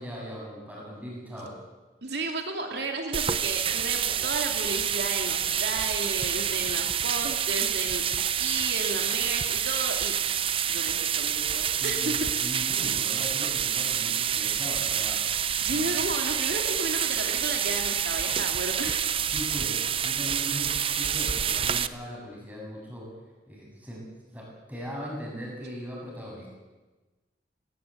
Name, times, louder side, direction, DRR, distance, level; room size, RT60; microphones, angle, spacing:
voice 1, 0.0-1.5 6.5-6.7 11.8-15.2 15.7-15.8 19.3-23.1 23.5-24.1 24.3-26.5, equal, 10° right, -3 dB, 7.5 m, -39 dB
voice 2, 2.0-8.0 8.4-10.4 10.7-12.4 15.6-19.0, right 3 dB, 75° right, 3 dB, 2.5 m, -33 dB
sound 1, 3.1-21.9, right 9 dB, 30° right, 0.6 m, -28 dB
19.0 x 18.5 x 8.4 m, 1.2 s
head